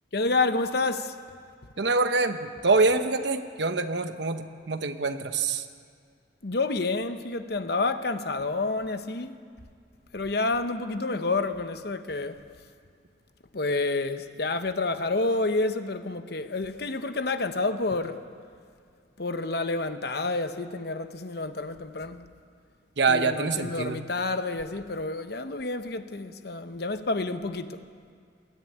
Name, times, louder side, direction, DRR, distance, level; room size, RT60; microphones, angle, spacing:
voice 1, 0.1-1.1 6.4-9.3 10.1-12.4 13.5-18.2 19.2-22.2 23.1-27.8, left 3 dB, 60° left, 9 dB, 1.0 m, -29 dB
voice 2, 1.8-5.6 23.0-24.0, right 3 dB, 70° right, 9 dB, 1.1 m, -25 dB
21.0 x 13.0 x 9.4 m, 2.2 s
head